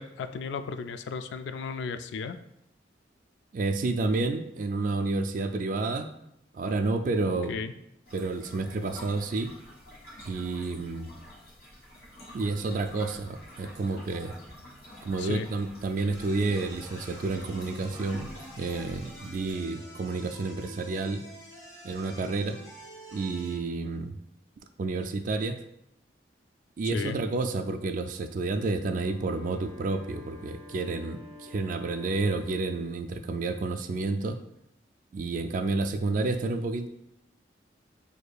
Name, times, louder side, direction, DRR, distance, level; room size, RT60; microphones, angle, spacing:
voice 1, 0.0-2.4 7.5-7.7 15.2-15.5 26.8-27.2, left 5 dB, 75° left, 9 dB, 0.3 m, -35 dB
voice 2, 3.5-6.1 6.5-7.5 8.1-9.5 10.3-11.1 12.3-14.3 15.0-18.3 18.6-21.2 21.8-22.6 23.1-24.2 24.8-25.6 26.8-34.4 35.1-36.9, right 3 dB, 45° right, 9 dB, 0.3 m, -30 dB
sound 1, 8.0-19.5, left 1 dB, 60° left, 1.3 m, -48 dB
sound 2, 16.1-23.5, right 1 dB, 15° left, 1.3 m, -48 dB
Wind instrument woodwind instrument, 28.9-33.0, left 3 dB, 30° right, 1.0 m, -49 dB
6.3 x 2.7 x 2.3 m, 0.80 s
head